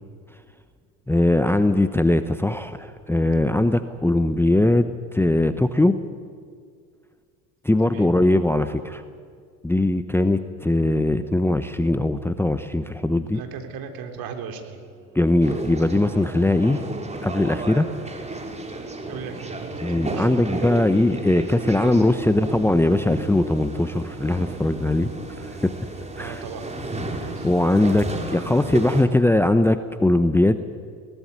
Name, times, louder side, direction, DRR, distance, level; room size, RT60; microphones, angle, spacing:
voice 1, 1.1-6.0 7.6-9.0 9.6-13.4 15.1-16.8 17.2-17.9 19.8-25.1 25.4-25.7 26.2-26.4 27.2-30.6, left 1 dB, 5° left, 10 dB, 1.0 m, -20 dB
sound 1, 12.6-25.3, right 5 dB, 70° right, 7.3 m, -52 dB
voice 2, 13.3-14.8 19.1-20.3 26.2-26.7 27.2-27.5 27.9-28.2, right 6 dB, 50° right, 5 dB, 3.7 m, -37 dB
sound 2, 15.4-29.0, right 2 dB, 15° right, 3.7 m, -33 dB
21.0 x 18.5 x 9.6 m, 2.1 s
hypercardioid pair, 80°, 44 cm